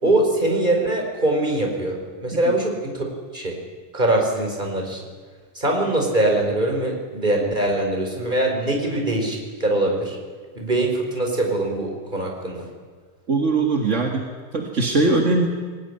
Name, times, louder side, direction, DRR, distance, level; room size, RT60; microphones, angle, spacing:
voice 1, 0.0-3.0 3.3-3.6 3.9-5.0 5.5-10.2 10.5-12.7, right 1 dB, 15° right, 1 dB, 4.5 m, -22 dB
voice 2, 13.3-15.5, right 3 dB, 35° right, 2 dB, 1.3 m, -21 dB
22.0 x 18.5 x 9.9 m, 1.5 s
omnidirectional pair, 3.9 m